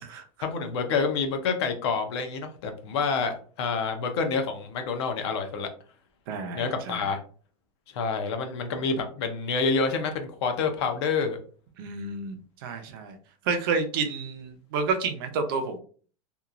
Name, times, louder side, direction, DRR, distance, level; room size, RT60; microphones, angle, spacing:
voice 1, 0.4-5.7 6.5-7.2 7.9-11.4, left 5 dB, 50° left, 6 dB, 0.5 m, -28 dB
voice 2, 6.3-7.0 11.8-13.2 13.5-15.8, right 4 dB, 40° right, 6 dB, 0.4 m, -30 dB
2.9 x 2.2 x 2.4 m, 0.42 s
supercardioid pair, 180°, 19 cm